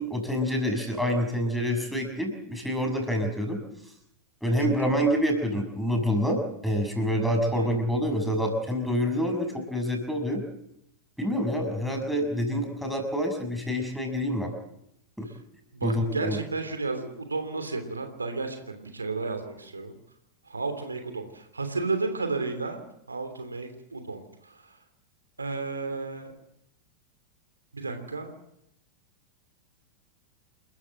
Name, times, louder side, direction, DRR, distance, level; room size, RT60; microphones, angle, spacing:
voice 1, 0.0-3.6 4.4-10.4 11.2-14.5 15.2-15.3 15.8-16.4, equal, ahead, 3 dB, 6.5 m, -27 dB
voice 2, 15.7-20.0 20.5-22.8 23.1-24.6 25.4-26.3 27.7-28.3, right 3 dB, 80° right, 7 dB, 3.1 m, -32 dB
29.0 x 14.5 x 7.9 m, 0.79 s
figure-of-eight pair, 90°, 0 cm